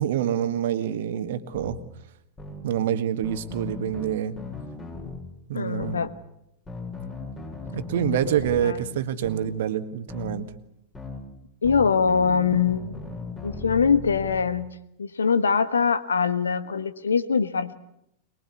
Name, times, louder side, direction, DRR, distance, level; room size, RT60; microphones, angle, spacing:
voice 1, 0.0-1.8 2.6-4.4 5.5-6.0 7.7-10.5, right 10 dB, 55° right, 10 dB, 1.7 m, -26 dB
sound 1, 1.5-1.8 2.4-2.6 3.2-5.2 5.8-6.1 6.7-8.6 9.2-9.5 10.1-10.4 10.9-11.2 11.6-14.4, left 3 dB, 20° left, 7.3 m, -37 dB
voice 2, 5.5-6.1 7.9-8.2 8.6-8.8 11.6-12.9 13.4-17.7, left 6 dB, 70° left, 12 dB, 1.3 m, -23 dB
23.5 x 21.5 x 8.4 m, 0.79 s
figure-of-eight pair, 90°, 0 cm